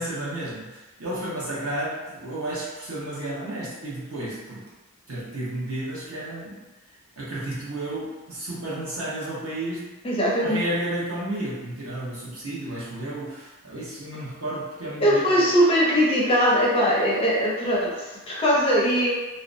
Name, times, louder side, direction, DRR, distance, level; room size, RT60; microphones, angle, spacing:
voice 1, 0.0-4.6 5.1-6.6 7.2-9.9 10.4-15.5, right 1 dB, 65° right, -7 dB, 0.9 m, -32 dB
voice 2, 10.0-10.6 15.0-19.1, equal, 25° left, -4 dB, 0.4 m, -21 dB
2.6 x 2.1 x 2.5 m, 1.2 s
head